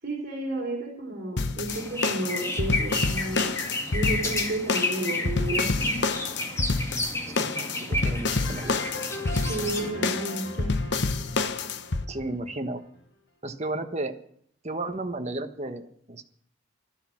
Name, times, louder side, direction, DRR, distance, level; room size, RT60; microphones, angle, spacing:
voice 1, 0.0-3.5 3.9-6.0 9.5-10.7, right 2 dB, 50° right, -3 dB, 3.7 m, -32 dB
sound 1, 1.4-12.1, left 3 dB, 55° left, 0.9 m, -28 dB
sound 2, 1.7-9.9, left 1 dB, 15° left, 2.1 m, -31 dB
voice 2, 7.3-8.7 12.1-12.8 13.4-14.1 14.6-16.2, right 2 dB, 35° right, 7 dB, 1.3 m, -33 dB
sound 3, 8.2-12.8, left 1 dB, 90° left, 5.5 m, -40 dB
13.5 x 13.0 x 6.0 m, 0.63 s
head